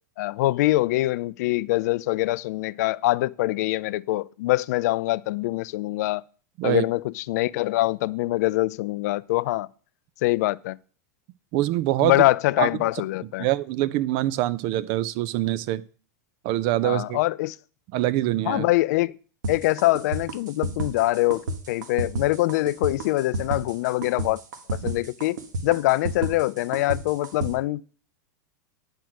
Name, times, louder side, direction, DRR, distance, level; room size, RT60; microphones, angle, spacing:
voice 1, 0.2-6.2 6.6-9.7 10.2-10.8 12.0-13.5 16.8-17.6 18.5-19.1 19.5-24.4 24.7-25.4 25.6-27.8, left 18 dB, 65° left, 0.4 m, -24 dB
voice 2, 11.5-12.2 12.6-12.7 13.4-15.8 16.4-17.2 17.9-18.7 24.8-24.9, right 15 dB, 50° right, 0.6 m, -24 dB
sound 1, 19.4-27.5, right 2 dB, 80° right, 1.6 m, -31 dB
9.5 x 4.5 x 6.2 m
hypercardioid pair, 110°, 10 cm